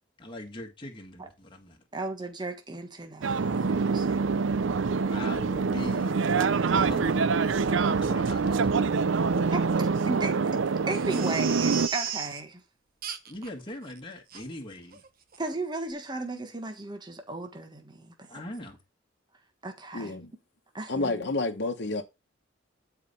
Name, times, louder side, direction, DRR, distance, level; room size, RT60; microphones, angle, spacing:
voice 1, 0.2-1.8 5.1-6.2 6.7-8.7 13.3-15.0 18.3-18.8, left 1 dB, 25° left, 1.5 m, -41 dB
voice 2, 1.9-4.2 9.5-10.6 10.9-12.6 15.4-18.4 19.6-20.2 20.7-21.2, right 2 dB, 25° right, 1.5 m, -35 dB
sound 1, 3.2-11.9, right 4 dB, 80° right, 0.6 m, -25 dB
Crying sobbing, 10.9-12.4 13.0-13.5 13.9-14.0 14.3-14.4 14.9-15.1 15.3-15.4, right 8 dB, 50° right, 1.2 m, -35 dB
voice 3, 19.9-20.3 20.9-22.0, left 2 dB, 65° left, 1.1 m, -29 dB
9.4 x 4.9 x 5.4 m
head